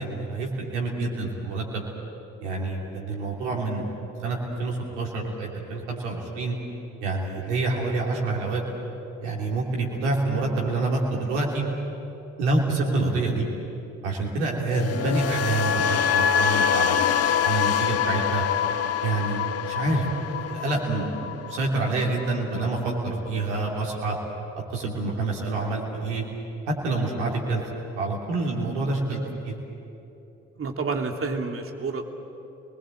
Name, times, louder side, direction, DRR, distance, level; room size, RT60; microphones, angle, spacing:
voice 1, 0.0-1.8 2.4-3.9 4.2-6.6 7.0-8.6 9.2-11.6 12.4-13.4 14.0-17.0 17.4-18.4 19.0-20.0 20.3-21.1 21.4-24.2 24.7-26.2 26.7-27.6 27.9-29.2 29.4-29.5, right 3 dB, 75° right, -1 dB, 3.1 m, -27 dB
sound 1, 14.7-22.8 23.1-23.4, left 8 dB, 45° left, 1.1 m, -25 dB
voice 2, 30.6-32.1, right 4 dB, 40° right, 3 dB, 2.8 m, -29 dB
29.5 x 20.5 x 7.7 m, 2.9 s
figure-of-eight pair, 50°, 35 cm